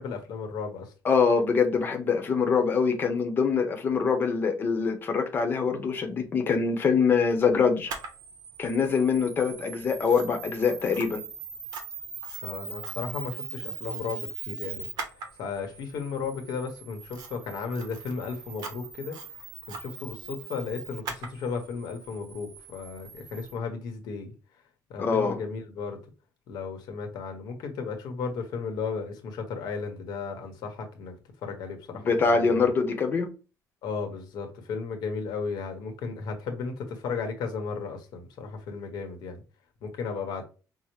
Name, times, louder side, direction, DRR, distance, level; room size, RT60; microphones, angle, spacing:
voice 1, 0.0-0.9 12.4-14.9 15.4-24.3 24.9-26.0 26.5-31.1 31.4-32.7 33.8-39.4 39.8-40.5, left 5 dB, 85° left, 1.1 m, -35 dB
voice 2, 1.0-7.9 8.6-11.2 25.0-25.4 32.0-33.3, left 5 dB, 30° left, 0.8 m, -24 dB
Camera, 7.9-23.5, right 5 dB, 70° right, 0.9 m, -41 dB
5.6 x 2.1 x 3.1 m
cardioid pair, 175°, 7 cm